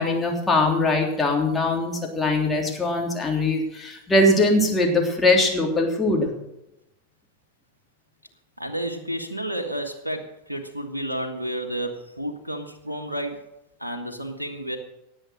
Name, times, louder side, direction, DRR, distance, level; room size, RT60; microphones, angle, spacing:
voice 1, 0.0-6.3, left 2 dB, 10° left, 0 dB, 3.3 m, -21 dB
voice 2, 8.6-13.4 13.8-14.8, right 1 dB, 85° right, 4 dB, 1.6 m, -31 dB
18.0 x 7.8 x 6.5 m, 0.90 s
figure-of-eight pair, 90°, 0 cm